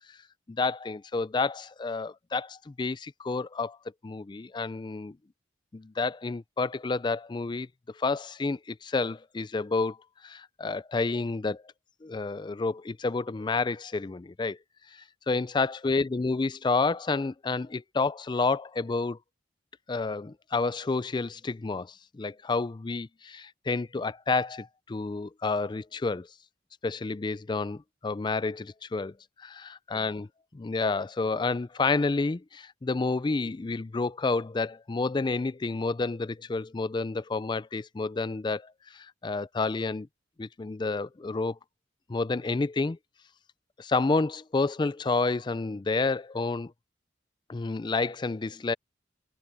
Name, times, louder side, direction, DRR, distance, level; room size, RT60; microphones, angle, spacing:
voice 1, 0.5-3.8 4.0-5.2 5.7-7.7 8.0-10.0 10.2-11.6 12.0-14.6 14.9-19.2 19.9-26.3 26.8-30.3 30.5-40.1 40.4-41.6 42.1-43.0 43.8-46.7 47.5-48.7, left 3 dB, 25° left, 0.4 m, -30 dB
head